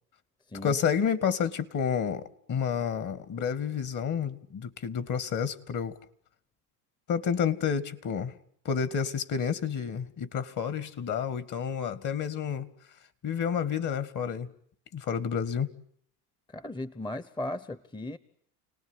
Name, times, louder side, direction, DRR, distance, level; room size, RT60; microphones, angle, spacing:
voice 1, 0.6-6.0 7.1-8.3 8.6-12.7 13.2-14.5 14.9-15.7, left 7 dB, 40° left, 2.1 m, -30 dB
voice 2, 16.5-18.2, left 1 dB, 10° left, 1.1 m, -36 dB
29.5 x 19.0 x 9.9 m
supercardioid pair, 95°, 45 cm